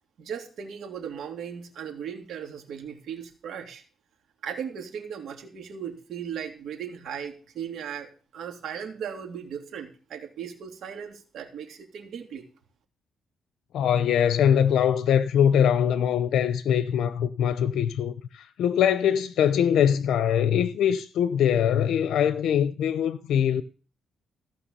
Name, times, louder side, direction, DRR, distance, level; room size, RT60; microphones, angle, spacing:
voice 1, 0.2-3.8 4.4-12.5, right 8 dB, 70° right, 3.1 m, -37 dB
voice 2, 13.7-23.6, left 9 dB, 80° left, 0.7 m, -22 dB
15.5 x 5.8 x 6.9 m
cardioid pair, 135°, 0 cm